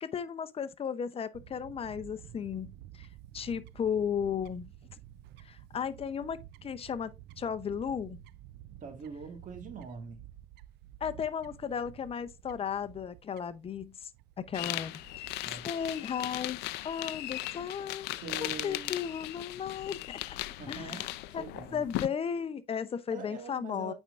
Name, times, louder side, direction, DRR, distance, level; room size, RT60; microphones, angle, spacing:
voice 1, 0.0-3.1 3.3-4.7 5.4-8.2 11.0-14.1 14.4-15.3 15.6-16.6 16.8-18.1 18.4-20.4 20.7-21.1 21.3-21.4 21.7-23.9, left 7 dB, 35° left, 0.7 m, -35 dB
Fowl / Bird, 1.3-16.0, right 13 dB, 75° right, 0.4 m, -52 dB
voice 2, 8.8-10.2 15.4-15.7 18.1-19.0 20.6-22.0 23.1-23.9, right 4 dB, 50° right, 1.8 m, -43 dB
sound 1, 14.5-22.1, left 17 dB, 90° left, 0.4 m, -38 dB
8.7 x 4.5 x 2.5 m
cardioid pair, 110°, 17 cm